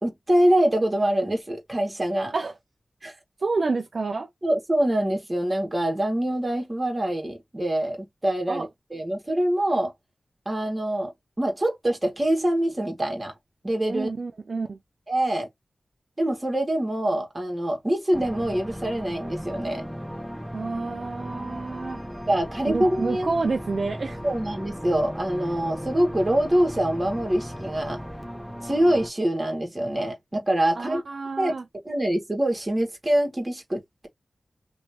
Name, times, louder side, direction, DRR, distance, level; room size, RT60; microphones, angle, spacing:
voice 1, 0.0-2.3 3.0-3.1 4.4-9.9 10.5-11.1 11.4-13.3 13.6-14.1 15.1-15.5 16.2-19.8 22.3-23.3 24.2-28.0 28.6-31.0 31.4-31.5 31.8-34.1, right 1 dB, 25° right, 1.8 m, -25 dB
voice 2, 3.4-4.3 8.5-8.7 13.9-14.8 20.5-22.0 22.7-24.2 30.8-31.6, right 3 dB, 65° right, 0.6 m, -29 dB
sound 1, 18.1-29.1, equal, ahead, 0.7 m, -37 dB
3.1 x 2.7 x 2.9 m
wide cardioid pair, 85°, 0 cm